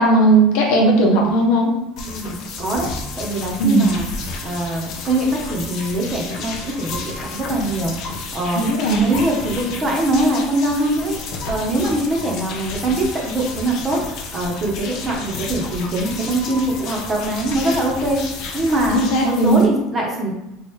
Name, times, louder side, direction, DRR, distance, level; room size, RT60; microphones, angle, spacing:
voice 1, 0.0-1.7 3.6-3.9 8.6-9.0 18.9-19.6, right 2 dB, 75° left, -2 dB, 0.9 m, -16 dB
sound 1, 2.0-19.7, left 3 dB, 55° left, 0.6 m, -31 dB
voice 2, 2.0-2.9 3.2-4.1 4.4-8.7 9.0-11.2 11.5-14.0 14.3-20.3, right 1 dB, 30° right, -1 dB, 0.8 m, -22 dB
3.2 x 2.4 x 3.1 m, 0.91 s
supercardioid pair, 110°, 0 cm